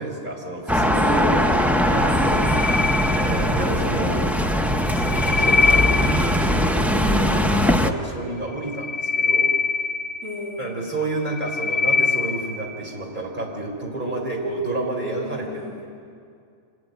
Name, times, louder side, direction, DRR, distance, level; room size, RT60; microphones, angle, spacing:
voice 1, 0.0-1.3 1.9-2.2 3.1-4.2 4.9-9.5 10.6-15.9, right 2 dB, 35° right, -1 dB, 4.1 m, -30 dB
sound 1, 0.7-7.9, equal, ahead, 0.5 m, -21 dB
voice 2, 1.1-1.9 2.2-3.0 4.1-4.3 10.2-10.9 15.2-15.8, right 1 dB, 75° right, -5 dB, 3.1 m, -32 dB
sound 2, 2.3-3.8 4.7-6.6 8.5-10.6 11.1-12.7, left 4 dB, 70° left, 1.5 m, -23 dB
25.0 x 13.5 x 9.2 m, 2.3 s
omnidirectional pair, 1.4 m